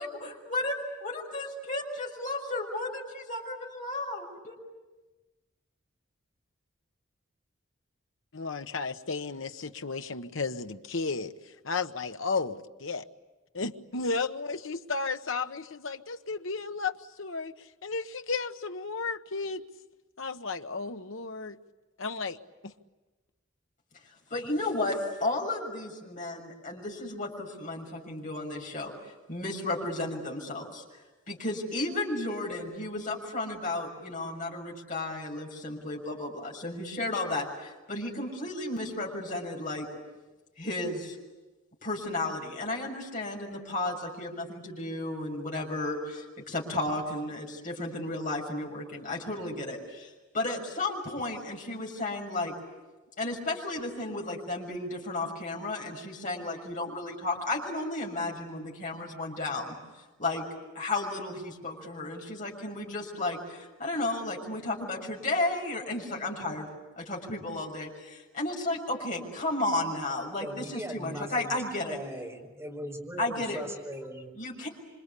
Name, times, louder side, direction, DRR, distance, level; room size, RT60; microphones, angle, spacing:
voice 1, 0.0-4.6 24.3-28.9 29.3-30.8 31.3-39.9 40.6-41.2 41.8-52.5 53.2-59.8 60.2-60.4 60.7-66.7 67.0-72.0 73.2-73.6 74.3-74.7, left 2 dB, 40° left, -1 dB, 6.6 m, -33 dB
voice 2, 8.3-13.0 13.5-19.6 20.2-21.6 22.0-22.7, left 4 dB, 80° left, 9 dB, 1.1 m, -34 dB
voice 3, 70.4-71.5 71.9-74.3, right 1 dB, 15° right, 1 dB, 4.8 m, -39 dB
27.5 x 26.0 x 8.4 m, 1.2 s
head